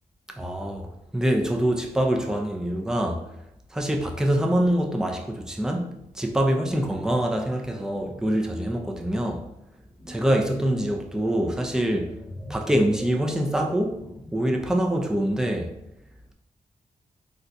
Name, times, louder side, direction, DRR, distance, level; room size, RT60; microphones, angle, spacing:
voice 1, 0.3-3.3 3.7-9.5 10.1-12.2 12.5-15.7, right 1 dB, 5° right, 0.4 m, -25 dB
sound 1, 9.8-14.6, left 1 dB, 40° left, 1.4 m, -43 dB
3.8 x 2.5 x 2.2 m
cardioid pair, 65°, 16 cm